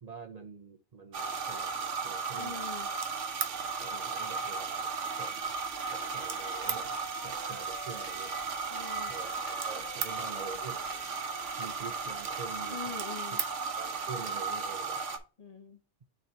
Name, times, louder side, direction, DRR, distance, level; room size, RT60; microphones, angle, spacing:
voice 1, 0.0-2.6 3.8-5.5 5.9-6.9 7.2-8.3 9.1-10.8 11.6-13.0 13.7-15.0, right 5 dB, 45° right, 6 dB, 0.6 m, -46 dB
sound 1, 1.1-15.2, right 5 dB, 80° right, 1.2 m, -35 dB
voice 2, 2.4-2.9 8.7-9.1 12.7-13.4 15.4-15.8, left 6 dB, 40° left, 4 dB, 0.6 m, -43 dB
sound 2, 5.4-12.5, right 1 dB, 30° right, 1.2 m, -56 dB
Trumpet, 5.7-12.4, left 6 dB, 85° left, 1.2 m, -51 dB
6.4 x 2.9 x 5.5 m, 0.36 s
omnidirectional pair, 1.2 m